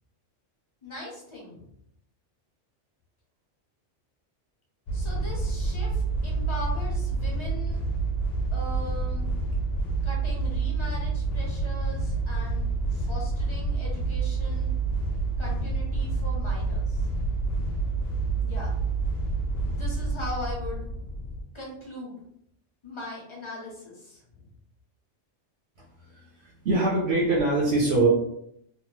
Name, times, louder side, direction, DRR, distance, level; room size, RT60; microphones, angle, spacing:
voice 1, 0.8-1.7 4.9-7.8 8.5-9.3 10.0-14.7 15.4-17.3 18.4-18.8 19.7-20.8 21.5-22.1 22.8-24.5, left 1 dB, 30° left, -3 dB, 0.7 m, -40 dB
sound 1, 4.9-21.4, right 3 dB, 65° left, 0.8 m, -28 dB
voice 2, 26.1-28.1, right 2 dB, 70° right, -4 dB, 1.0 m, -24 dB
2.9 x 2.0 x 3.1 m, 0.73 s
omnidirectional pair, 1.2 m